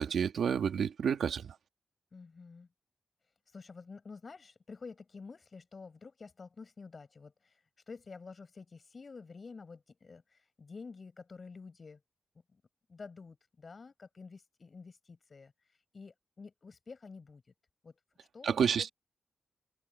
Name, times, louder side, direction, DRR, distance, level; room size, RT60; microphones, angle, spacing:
voice 1, 0.0-1.6 18.4-18.9, right 7 dB, 90° right, 1.8 m, -30 dB
voice 2, 2.1-2.7 3.5-12.0 12.5-12.6 12.9-17.5 17.8-18.9, left 4 dB, 40° left, 6.3 m, -50 dB
wide cardioid pair, 120°, 0 cm